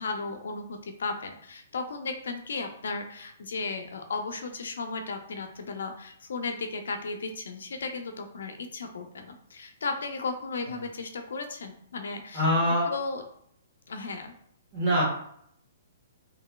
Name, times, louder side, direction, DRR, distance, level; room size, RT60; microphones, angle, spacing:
voice 1, 0.0-12.5 12.8-13.2 13.9-14.3, left 4 dB, 85° left, 6 dB, 0.5 m, -35 dB
voice 2, 12.3-12.9 14.7-15.0, equal, 15° right, -7 dB, 1.4 m, -23 dB
2.9 x 2.6 x 2.2 m, 0.67 s
hypercardioid pair, 170°, 0 cm